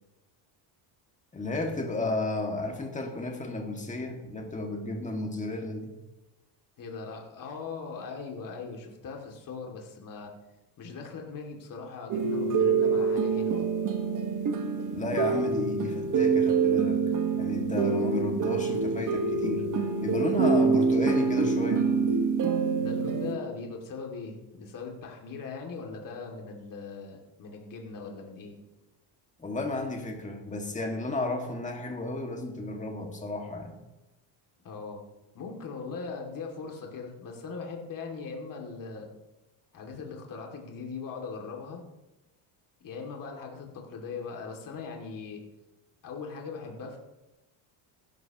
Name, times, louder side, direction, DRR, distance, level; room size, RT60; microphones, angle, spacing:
voice 1, 1.3-5.9 14.9-17.0 17.3-19.7 20.0-21.9 29.4-33.8, left 2 dB, 15° left, 2 dB, 2.0 m, -32 dB
voice 2, 6.8-10.3 10.8-13.7 22.8-28.6 34.6-35.0 35.3-39.1 39.7-41.8 42.8-45.4 46.0-47.0, left 4 dB, 45° left, 1 dB, 2.6 m, -40 dB
sound 1, 12.1-23.3, right 5 dB, 40° right, 1.5 m, -26 dB
16.0 x 12.0 x 3.0 m, 0.99 s
cardioid pair, 130°, 46 cm